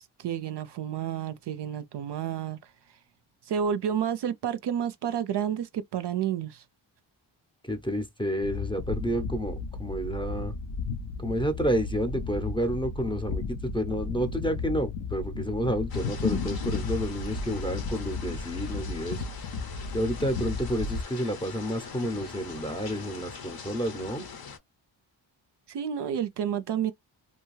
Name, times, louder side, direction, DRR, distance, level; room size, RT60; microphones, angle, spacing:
voice 1, 0.0-2.7 3.5-6.6 25.7-26.9, right 9 dB, 55° right, 0.5 m, -30 dB
voice 2, 7.6-10.6 11.2-19.2 19.9-24.3, equal, 10° left, 0.6 m, -30 dB
sound 1, 8.4-21.0, left 4 dB, 85° left, 0.7 m, -34 dB
sound 2, 15.9-24.6, left 6 dB, 50° left, 0.7 m, -43 dB
2.6 x 2.3 x 3.1 m
cardioid pair, 65°, 49 cm